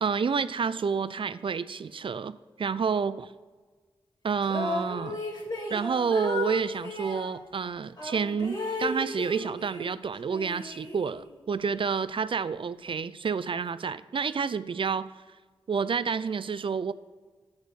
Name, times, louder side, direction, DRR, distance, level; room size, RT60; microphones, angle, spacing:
voice 1, 0.0-3.3 4.2-5.2 5.7-15.1 15.7-16.9, right 6 dB, 55° right, 0.4 m, -29 dB
sound 1, 4.4-7.3 8.0-9.9 10.3-11.4, left 2 dB, 40° left, 2.2 m, -34 dB
8.0 x 4.1 x 6.6 m
cardioid pair, 50°, 10 cm